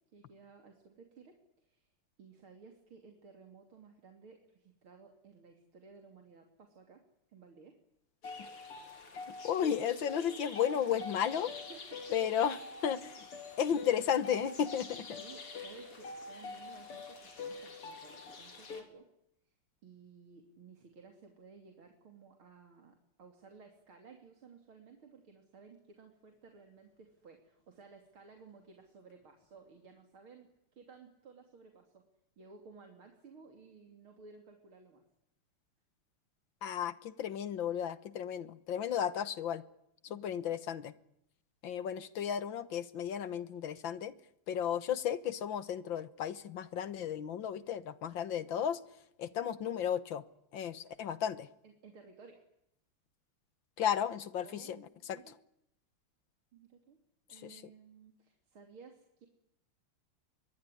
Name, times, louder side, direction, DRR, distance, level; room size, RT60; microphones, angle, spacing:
voice 1, 0.1-1.9 2.2-7.0 7.3-7.8 10.5-10.6 11.3-12.4 12.7-12.9 15.1-19.1 19.8-32.1 32.4-35.0 40.1-40.2 51.6-52.4 54.4-54.9 55.1-55.3 56.5-57.0 57.3-59.3, right 5 dB, 70° right, 4 dB, 3.7 m, -56 dB
sound 1, 8.2-18.8, left 3 dB, 90° left, 4.6 m, -45 dB
voice 2, 9.4-11.5 12.1-12.6 12.8-13.0 13.6-15.2 36.6-39.6 40.0-40.9 41.6-44.1 44.5-48.8 49.2-50.2 50.5-51.5 53.8-55.2 57.3-57.6, left 9 dB, 60° left, 15 dB, 1.9 m, -34 dB
24.5 x 22.5 x 9.9 m, 0.79 s
omnidirectional pair, 2.4 m